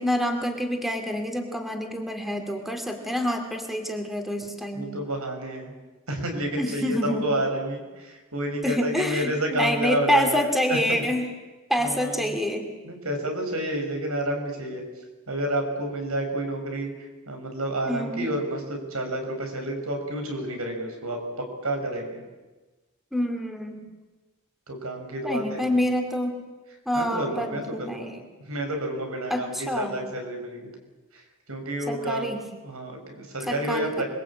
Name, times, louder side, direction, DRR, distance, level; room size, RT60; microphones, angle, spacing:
voice 1, 0.0-4.9 6.6-7.3 8.6-11.3 11.7-12.7 17.9-18.3 23.1-23.9 25.2-26.4 26.9-28.2 29.3-29.9 31.9-32.4 33.5-34.0, equal, ahead, 4 dB, 2.6 m, -27 dB
voice 2, 4.7-5.7 6.1-10.4 10.7-10.8 11.8-12.3 12.8-14.8 15.3-16.9 17.3-22.2 24.7-25.6 26.9-28.1 28.5-30.7 31.1-31.2 31.5-32.3 32.6-34.0, right 1 dB, 80° right, 4 dB, 5.8 m, -30 dB
28.0 x 22.0 x 8.7 m, 1.2 s
head